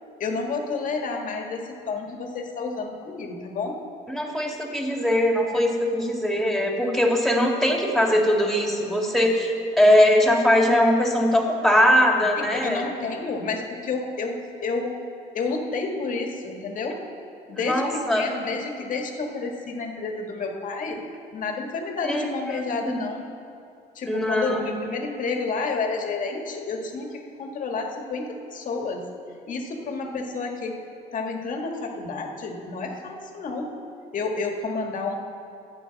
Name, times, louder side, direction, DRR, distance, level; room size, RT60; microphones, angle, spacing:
voice 1, 0.2-3.8 12.4-15.0 15.3-17.0 17.5-21.0 21.3-23.3 23.9-29.1 29.5-30.8 31.1-33.7 34.1-35.2, left 4 dB, 50° left, 2 dB, 1.7 m, -30 dB
voice 2, 4.1-12.8 17.6-18.3 22.0-22.3 22.8-23.0 24.1-24.9, left 1 dB, ahead, -1 dB, 2.3 m, -21 dB
24.0 x 8.3 x 4.1 m, 2.6 s
cardioid pair, 110°, 17 cm